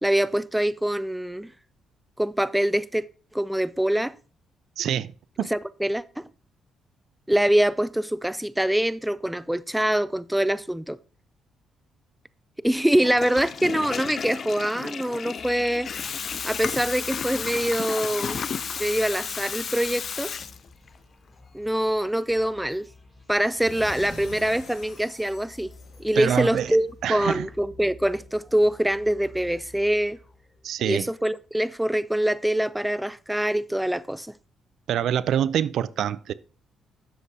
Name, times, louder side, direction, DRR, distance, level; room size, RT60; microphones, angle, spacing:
voice 1, 0.0-1.5 2.2-3.0 3.3-4.1 5.5-6.2 7.3-11.0 12.6-15.9 16.4-18.4 18.8-20.3 21.5-22.9 23.3-25.7 26.0-30.2 30.8-34.3, right 1 dB, 5° right, 0.4 m, -24 dB
voice 2, 4.8-5.1 5.4-5.5 26.2-26.8 27.0-27.5 30.6-31.1 34.9-36.3, right 9 dB, 75° right, 0.4 m, -25 dB
Water tap faucet / Toilet flush, 12.9-21.0, left 7 dB, 50° left, 0.5 m, -33 dB
sound 1, 15.4-31.0, left 2 dB, 15° left, 2.8 m, -51 dB
sound 2, 23.4-26.7, left 3 dB, 70° left, 2.3 m, -44 dB
10.0 x 7.3 x 2.8 m
cardioid pair, 90°, 0 cm